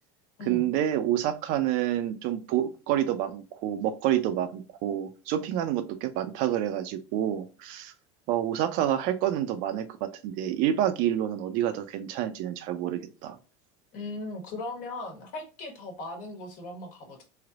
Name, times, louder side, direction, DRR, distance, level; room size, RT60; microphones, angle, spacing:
voice 1, 0.5-7.9 8.3-9.9 10.2-13.4, right 11 dB, 60° right, 9 dB, 0.5 m, -28 dB
voice 2, 13.9-17.2, left 2 dB, 55° left, 3 dB, 1.3 m, -38 dB
3.3 x 2.7 x 2.4 m, 0.33 s
supercardioid pair, 115°, 16 cm